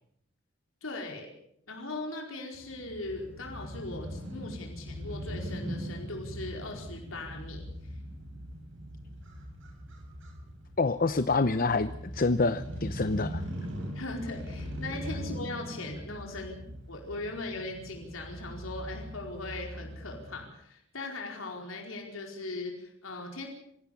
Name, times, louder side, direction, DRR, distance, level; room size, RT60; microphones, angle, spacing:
voice 1, 0.8-1.3 1.7-7.7 13.9-23.5, left 2 dB, 90° left, 1 dB, 4.7 m, -39 dB
Crow / Motorcycle, 2.5-20.4, equal, 70° right, 7.3 m, -41 dB
voice 2, 10.8-13.4, left 3 dB, 45° left, 12 dB, 0.8 m, -27 dB
26.0 x 16.5 x 7.1 m, 0.74 s
head